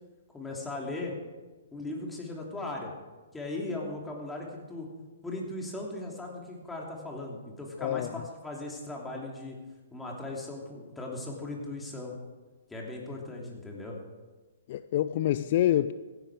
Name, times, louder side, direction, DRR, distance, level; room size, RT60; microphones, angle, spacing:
voice 1, 0.3-1.1 1.7-2.9 3.3-4.9 5.2-9.6 9.9-12.1 12.7-14.0, left 2 dB, 10° left, -2 dB, 2.9 m, -38 dB
voice 2, 14.7-15.9, left 12 dB, 50° left, 13 dB, 0.4 m, -26 dB
15.5 x 10.5 x 4.8 m, 1.2 s
hypercardioid pair, 135°, 0 cm